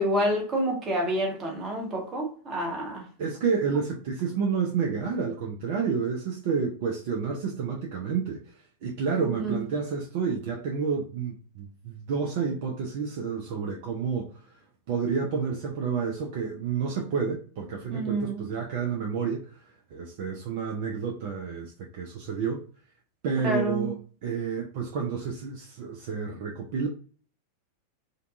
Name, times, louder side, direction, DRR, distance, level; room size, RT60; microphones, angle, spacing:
voice 1, 0.0-3.0 9.3-9.6 17.9-18.5 23.4-23.9, equal, 25° right, 1.0 m, -28 dB
voice 2, 3.2-14.3 14.9-19.6 19.9-22.6 23.2-23.9 24.2-26.9, right 5 dB, 50° right, 0.4 m, -30 dB
2.5 x 2.2 x 2.5 m
figure-of-eight pair, 90°, 0 cm